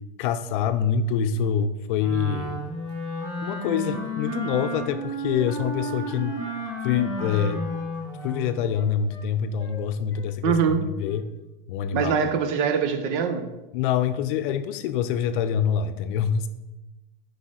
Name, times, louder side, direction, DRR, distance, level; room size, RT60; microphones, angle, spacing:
voice 1, 0.2-2.6 3.4-6.4 6.8-7.6 8.2-11.2 11.7-12.1 13.7-16.5, left 8 dB, 60° left, 10 dB, 0.6 m, -25 dB
Wind instrument woodwind instrument, 1.9-8.6, right 1 dB, 15° right, 2.4 m, -32 dB
Wind instrument woodwind instrument 2, 3.9-7.4 7.7-9.3 9.6-9.8 10.1-10.7 11.0-11.3, left 2 dB, 10° left, 1.7 m, -47 dB
voice 2, 10.4-10.8 11.9-13.5, right 7 dB, 55° right, 8 dB, 0.8 m, -23 dB
6.2 x 5.1 x 3.8 m, 1.0 s
supercardioid pair, 120°, 29 cm